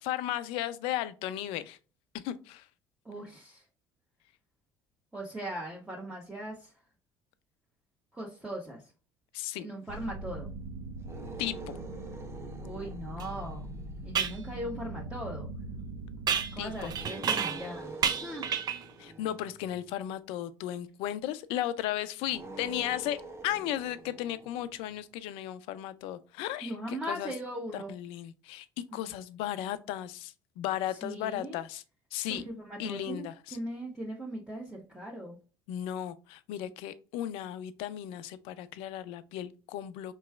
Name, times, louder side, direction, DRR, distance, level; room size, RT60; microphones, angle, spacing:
voice 1, 0.0-1.8 2.2-2.6 9.3-9.7 11.4-11.7 16.6-16.9 19.0-27.3 27.7-31.8 32.1-32.4 32.8-33.6 35.7-40.1, left 12 dB, 70° left, 0.4 m, -35 dB
voice 2, 3.0-3.6 5.1-6.7 8.1-8.8 9.6-10.5 12.6-13.7 14.0-15.5 16.5-18.5 26.6-27.9 28.9-29.1 30.9-31.6 32.3-33.2 33.5-35.4, right 1 dB, 10° right, 1.1 m, -39 dB
sound 1, 9.9-17.0, right 2 dB, 75° right, 0.9 m, -41 dB
sound 2, 11.0-14.5 16.9-20.0 22.2-25.0, right 2 dB, 30° right, 0.9 m, -46 dB
sound 3, 13.2-13.3 14.1-14.4 16.3-17.7 18.0-18.9, right 7 dB, 45° right, 0.5 m, -31 dB
4.6 x 3.0 x 2.3 m
hypercardioid pair, 75°, 10 cm